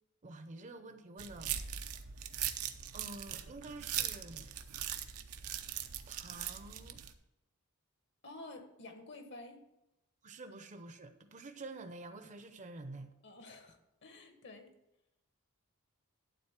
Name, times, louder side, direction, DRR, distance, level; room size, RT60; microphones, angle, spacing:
voice 1, 0.2-1.6 2.9-4.5 6.1-7.0 10.2-13.1, right 2 dB, 35° right, 0.7 m, -48 dB
sound 1, 1.2-7.1, right 10 dB, 90° right, 0.7 m, -40 dB
voice 2, 8.2-9.6 13.2-14.7, left 2 dB, 55° left, 1.3 m, -50 dB
12.0 x 4.0 x 7.3 m
head